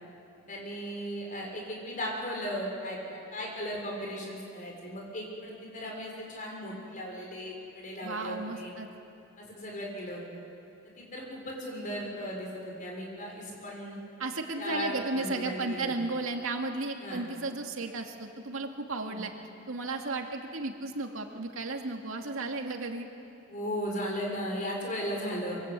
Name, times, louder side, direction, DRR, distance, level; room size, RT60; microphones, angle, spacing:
voice 1, 0.5-8.7 9.4-10.2 10.8-14.0 14.6-15.9 17.0-17.2 19.0-19.2 23.5-25.6, equal, 40° left, -1 dB, 6.3 m, -36 dB
voice 2, 8.0-8.9 14.2-19.3 19.7-23.1, right 3 dB, 75° right, 3 dB, 2.2 m, -34 dB
26.0 x 24.0 x 8.3 m, 2.7 s
head